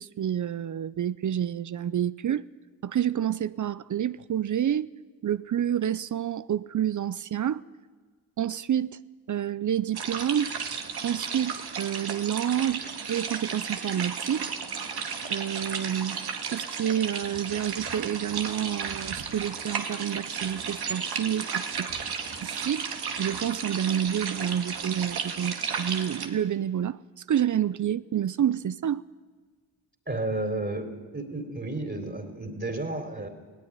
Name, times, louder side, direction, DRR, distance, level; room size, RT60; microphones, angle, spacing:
voice 1, 0.0-2.5 2.8-4.9 5.2-7.6 8.4-9.0 9.3-10.5 11.0-14.5 15.3-16.2 16.5-21.9 22.4-22.9 23.2-27.0 27.3-29.0, right 10 dB, 50° right, 17 dB, 0.6 m, -28 dB
sound 1, 9.9-26.3, right 6 dB, 65° right, 2.1 m, -34 dB
voice 2, 30.1-33.3, right 2 dB, 25° right, 4 dB, 3.6 m, -32 dB
17.5 x 15.5 x 9.9 m, 1.5 s
cardioid pair, 60°, 41 cm